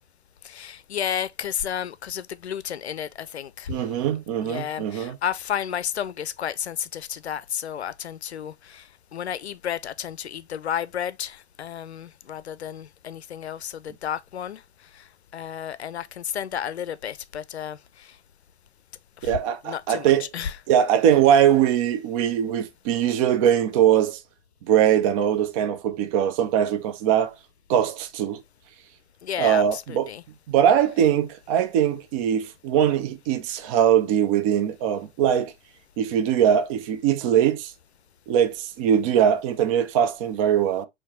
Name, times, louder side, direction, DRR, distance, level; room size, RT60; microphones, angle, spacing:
voice 1, 0.4-3.7 4.4-14.6 14.9-15.0 15.3-18.1 19.2-19.4 19.6-20.6 29.2-30.2, left 9 dB, 75° left, 0.5 m, -32 dB
voice 2, 3.7-5.2 19.2-20.2 20.7-24.2 24.7-27.3 27.7-28.4 29.4-30.1 30.5-35.5 36.0-37.7 38.3-40.8, right 9 dB, 35° right, 0.5 m, -21 dB
4.6 x 3.1 x 2.9 m
figure-of-eight pair, 100°, 33 cm